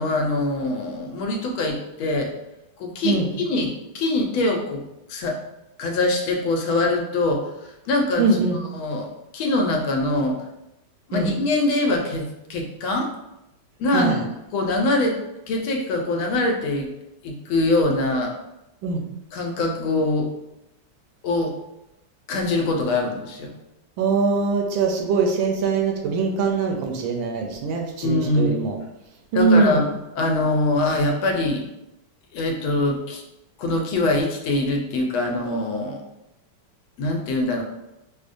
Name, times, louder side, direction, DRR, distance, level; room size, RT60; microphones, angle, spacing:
voice 1, 0.0-2.3 2.8-3.2 3.5-4.8 5.1-5.4 5.8-7.5 7.9-8.4 8.7-9.1 9.3-10.4 11.1-13.1 13.8-14.2 14.5-15.2 15.5-16.9 17.2-18.3 19.3-20.3 21.2-21.5 22.3-23.5 28.0-28.6 29.3-29.8 30.2-31.6 32.3-33.2 33.6-36.0 37.0-37.6, left 2 dB, 85° left, 2 dB, 1.4 m, -23 dB
voice 2, 8.2-8.6 11.1-11.3 13.9-14.2 18.8-19.0 24.0-28.8 29.3-29.9, right 4 dB, 75° right, 2 dB, 1.2 m, -22 dB
5.0 x 2.1 x 2.5 m, 0.90 s
omnidirectional pair, 2.2 m